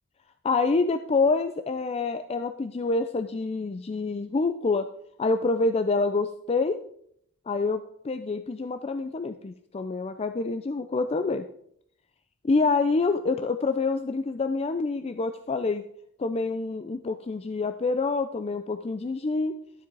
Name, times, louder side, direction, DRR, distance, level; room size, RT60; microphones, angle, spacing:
voice 1, 0.4-4.9 5.2-6.8 7.5-11.5 12.4-15.8 16.2-19.5, left 3 dB, 25° left, 9 dB, 0.4 m, -27 dB
12.0 x 7.5 x 4.0 m, 0.69 s
head